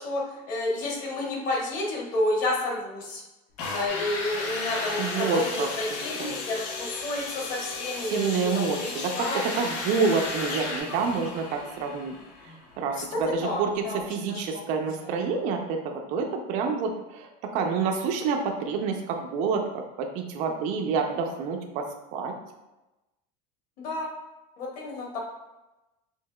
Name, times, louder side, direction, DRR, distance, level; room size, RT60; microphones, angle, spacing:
voice 1, 0.0-3.2 3.7-9.4 12.9-14.0 14.3-14.4 23.8-24.1 24.6-25.2, left 2 dB, 40° left, -2 dB, 1.1 m, -30 dB
sound 1, 3.6-13.3 14.0-14.1, left 3 dB, 90° left, 0.8 m, -37 dB
sound 2, 3.9-7.1 9.2-10.8, left 2 dB, 60° left, 1.2 m, -35 dB
voice 2, 5.0-5.7 6.2-6.4 8.1-12.1 12.4-22.4, right 5 dB, 40° right, 3 dB, 0.4 m, -28 dB
5.4 x 2.8 x 2.2 m, 1.0 s
cardioid pair, 165°, 20 cm